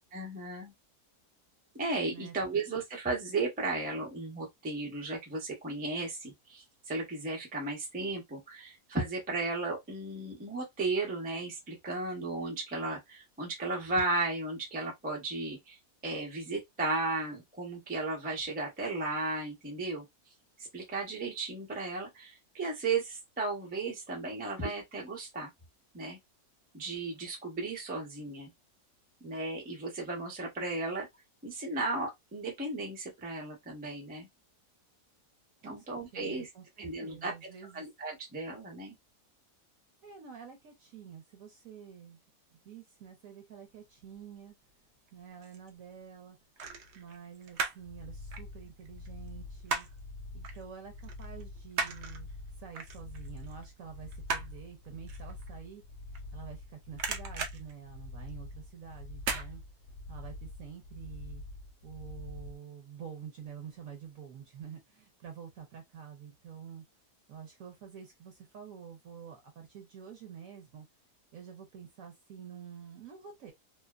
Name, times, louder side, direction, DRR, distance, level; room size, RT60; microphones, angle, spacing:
voice 1, 0.1-0.7 1.7-15.8 16.0-20.0 20.7-25.5 25.9-26.2 26.7-28.5 29.2-31.1 31.4-34.3 35.6-36.5 36.8-37.5 37.7-39.0, right 3 dB, 10° right, 0.4 m, -35 dB
voice 2, 2.1-2.6 35.6-37.9 40.0-42.2 42.5-44.6 45.1-46.4 46.9-49.9 50.3-52.3 52.6-55.8 56.3-59.6 60.1-61.4 61.8-66.8 67.3-70.9 71.3-73.5, right 8 dB, 65° right, 1.0 m, -48 dB
sound 1, 45.1-45.7 46.6-47.9 48.2-50.1 50.4-50.6 51.0-56.6 56.9-58.6 59.2-59.5 59.9-60.0, right 5 dB, 85° right, 0.6 m, -37 dB
sound 2, 47.8-62.6, left 2 dB, 70° left, 0.8 m, -46 dB
2.7 x 2.1 x 2.3 m
omnidirectional pair, 1.8 m